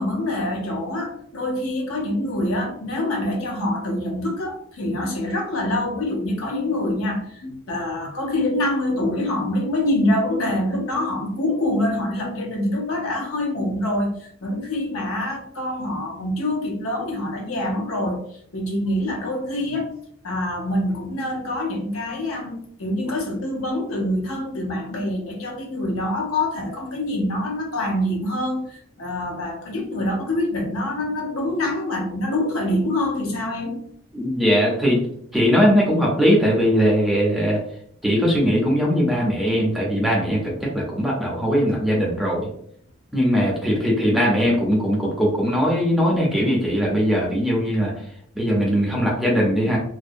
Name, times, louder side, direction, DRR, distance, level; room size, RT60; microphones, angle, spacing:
voice 1, 0.0-19.9 20.2-33.8, left 1 dB, 75° left, 1 dB, 0.6 m, -25 dB
voice 2, 34.1-35.0 35.3-37.6 38.0-42.5 43.1-47.9 48.3-49.8, equal, ahead, -4 dB, 0.5 m, -20 dB
2.5 x 2.0 x 2.5 m, 0.66 s
head